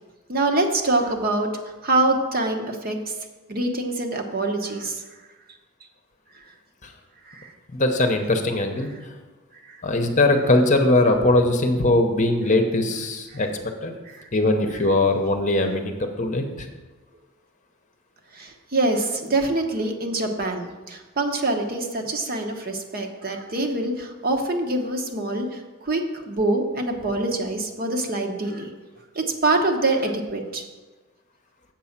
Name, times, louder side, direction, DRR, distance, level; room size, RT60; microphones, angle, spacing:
voice 1, 0.3-1.5 1.8-3.0 3.5-5.0 7.3-7.5 9.7-9.8 13.3-13.4 14.1-14.3 18.3-28.7 29.1-30.6, right 2 dB, 45° right, 3 dB, 0.9 m, -25 dB
voice 2, 7.7-8.9 9.8-13.5 13.8-13.9 14.3-16.7, left 2 dB, 35° left, 5 dB, 0.8 m, -20 dB
7.6 x 5.4 x 7.3 m, 1.2 s
head